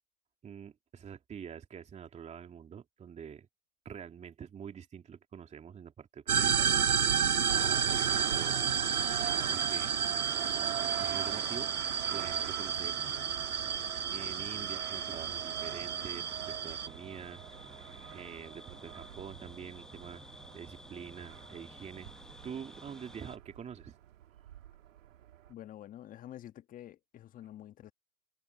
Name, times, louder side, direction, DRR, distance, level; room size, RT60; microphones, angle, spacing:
voice 1, 0.4-3.5 3.8-6.7 7.6-8.6 9.5-9.9 10.6-11.7 12.1-13.0 14.1-20.2 20.5-22.1 22.4-24.0, right 7 dB, 15° right, 3.0 m, -46 dB
sound 1, 6.3-16.9, right 7 dB, 90° right, 1.0 m, -31 dB
sound 2, 7.5-25.5, right 12 dB, 60° right, 3.3 m, -44 dB
sound 3, 7.6-23.4, left 1 dB, ahead, 1.2 m, -52 dB
voice 2, 25.5-27.9, left 12 dB, 20° left, 1.4 m, -48 dB
hypercardioid pair, 120°, 43 cm